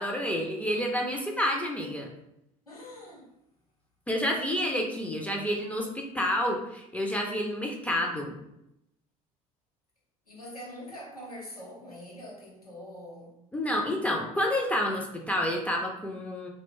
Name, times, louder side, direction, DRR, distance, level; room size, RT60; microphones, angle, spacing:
voice 1, 0.0-2.1 4.1-8.3 13.5-16.5, left 1 dB, 5° left, 0 dB, 0.4 m, -29 dB
voice 2, 2.7-3.3 10.3-13.4, equal, 90° left, -4 dB, 0.7 m, -44 dB
2.3 x 2.1 x 3.6 m, 0.82 s
figure-of-eight pair, 65°, 18 cm